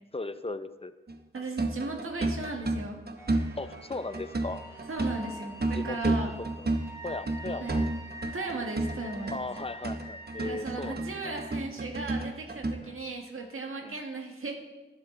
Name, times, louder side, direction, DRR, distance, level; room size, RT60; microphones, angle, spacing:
voice 1, 0.1-0.9 3.6-4.6 5.7-6.1 6.6-6.8 7.0-7.8 9.3-11.1 12.8-13.0 13.8-14.0, left 3 dB, 30° left, 12 dB, 0.6 m, -37 dB
sound 1, 1.1-12.7, right 2 dB, 50° right, 0.9 m, -31 dB
voice 2, 1.3-3.0 4.9-6.4 7.6-7.8 8.3-9.5 10.4-14.5, right 3 dB, 85° right, 2 dB, 1.7 m, -36 dB
sound 2, 3.2-11.5, right 1 dB, 15° right, 4.2 m, -46 dB
12.0 x 11.5 x 3.8 m, 1.1 s
wide cardioid pair, 65°, 21 cm